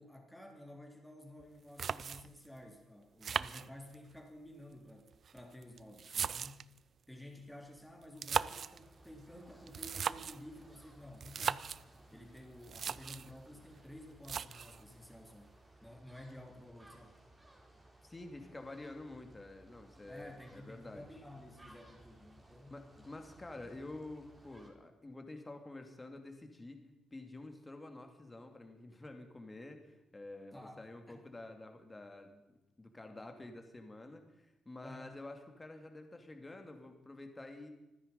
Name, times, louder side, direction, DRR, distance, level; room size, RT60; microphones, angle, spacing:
voice 1, 0.0-6.7 7.1-11.7 12.1-17.2 20.1-23.1 30.5-31.3 34.8-35.1, left 1 dB, 5° left, 2 dB, 3.5 m, -53 dB
sound 1, 1.4-1.5 1.8-2.5 3.2-4.2 5.1-6.8 8.0-8.8 9.7-10.5 11.2-11.8 12.4-12.5 12.6-13.3 14.2-14.8, right 7 dB, 50° right, 0.4 m, -38 dB
sound 2, 8.7-24.7, right 1 dB, 15° right, 4.0 m, -61 dB
voice 2, 18.0-21.2 22.7-26.8 27.1-32.4 32.8-37.7, left 2 dB, 20° left, 5 dB, 2.7 m, -49 dB
25.5 x 10.0 x 5.4 m, 0.96 s
cardioid pair, 90°, 0 cm